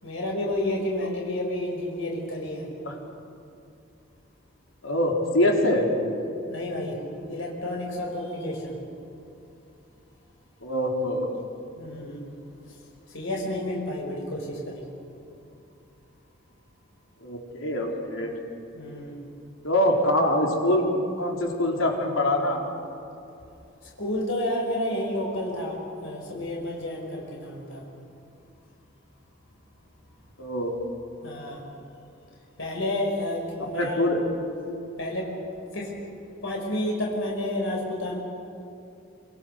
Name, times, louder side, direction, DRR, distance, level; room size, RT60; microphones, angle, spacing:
voice 1, 0.0-2.7 6.5-7.0 7.3-8.8 11.7-12.2 12.7-12.8 13.1-14.8 18.8-19.2 24.0-27.8 31.2-31.6 32.6-34.0 35.0-35.3 35.7-35.9 36.4-38.2, left 1 dB, 70° left, -1 dB, 5.5 m, -30 dB
voice 2, 4.8-5.9 10.6-11.3 17.2-18.3 19.6-20.9 21.2-22.6 30.4-30.8 33.6-34.3, left 1 dB, 85° left, 0 dB, 4.7 m, -24 dB
27.5 x 27.0 x 6.8 m, 2.7 s
head